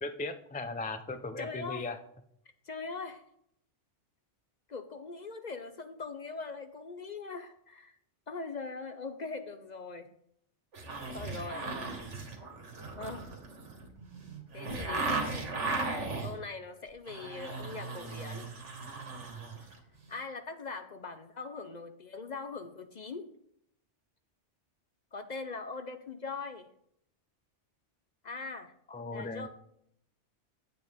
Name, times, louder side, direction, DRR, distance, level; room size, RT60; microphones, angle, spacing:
voice 1, 0.0-2.0 28.9-29.5, left 3 dB, 10° left, 8 dB, 0.4 m, -37 dB
voice 2, 1.4-1.9 2.6-3.2 4.7-8.0 8.3-10.1 11.1-11.7 13.0-13.3 14.5-15.5 16.2-18.5 20.1-23.3 25.1-26.7 28.2-28.7 29.1-29.5, left 4 dB, 45° left, 8 dB, 0.6 m, -41 dB
sound 1, 10.7-16.3 16.9-19.8 20.1-20.2, right 3 dB, 90° right, 1.9 m, -37 dB
9.7 x 7.7 x 3.6 m, 0.71 s
omnidirectional pair, 1.2 m